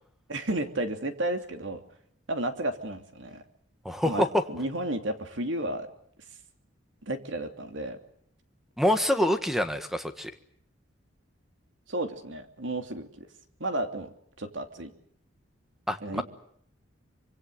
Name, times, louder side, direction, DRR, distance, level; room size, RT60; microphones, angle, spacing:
voice 1, 0.3-1.8 2.3-3.4 4.0-5.9 7.0-8.0 11.9-13.3 13.6-14.1 14.4-14.9 16.0-16.2, right 1 dB, 65° right, 7 dB, 2.8 m, -32 dB
voice 2, 3.8-4.4 8.8-10.3 15.9-16.2, left 1 dB, ahead, 9 dB, 1.5 m, -26 dB
25.0 x 24.5 x 7.9 m, 0.66 s
head